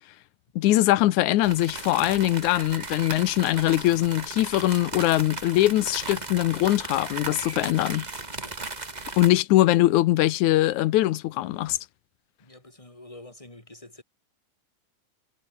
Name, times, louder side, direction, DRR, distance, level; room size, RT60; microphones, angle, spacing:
voice 1, 0.6-8.1 9.2-11.8, left 15 dB, 75° left, 2.2 m, -22 dB
sound 1, 1.4-9.3, right 3 dB, 20° right, 1.4 m, -36 dB
voice 2, 12.4-14.0, left 1 dB, 10° left, 4.4 m, -47 dB
omnidirectional pair, 3.6 m